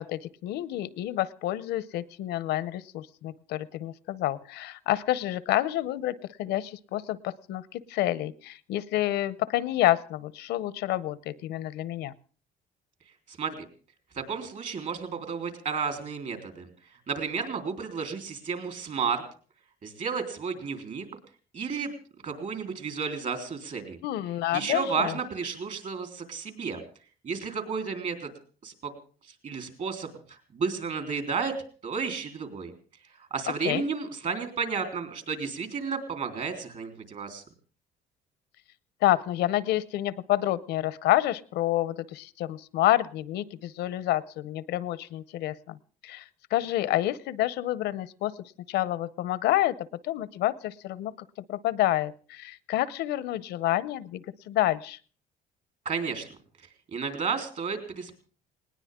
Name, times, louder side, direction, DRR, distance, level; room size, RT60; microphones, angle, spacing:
voice 1, 0.0-12.1 24.0-25.2 33.6-33.9 39.0-45.8 46.0-46.2 46.5-48.3 48.7-49.7 50.0-51.1 51.5-55.0, left 14 dB, 80° left, 18 dB, 0.8 m, -28 dB
voice 2, 14.2-16.7 17.1-19.2 19.8-21.1 21.5-21.9 22.2-24.0 24.5-26.8 27.2-28.3 28.6-28.9 29.4-31.5 31.8-32.7 33.3-37.4 55.9-56.3 56.9-58.1, right 5 dB, 50° right, 6 dB, 3.8 m, -32 dB
19.5 x 19.0 x 3.7 m, 0.40 s
cardioid pair, 110°, 17 cm